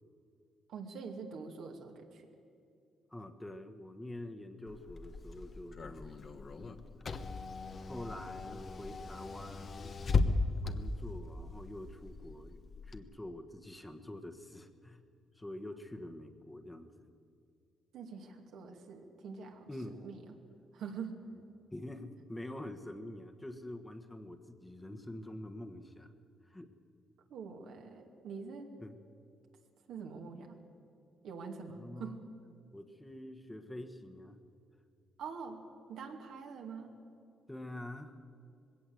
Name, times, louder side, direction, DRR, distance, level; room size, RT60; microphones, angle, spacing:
voice 1, 0.7-2.3 17.9-19.7 20.0-20.2 20.7-21.2 27.3-28.7 29.9-30.6 31.2-32.2 35.2-35.6 35.9-36.9, right 5 dB, 75° right, 2 dB, 2.3 m, -45 dB
voice 2, 3.1-7.0 7.8-10.0 10.6-15.0 15.3-17.0 19.7-20.0 21.7-26.1 26.4-26.7 28.8-29.0 31.7-32.2 32.7-34.4 37.5-38.2, left 1 dB, 10° left, 6 dB, 1.4 m, -46 dB
Car / Engine, 4.7-13.0, left 3 dB, 45° left, 1.2 m, -37 dB
20.0 x 17.0 x 7.8 m, 2.5 s
cardioid pair, 90°, 0 cm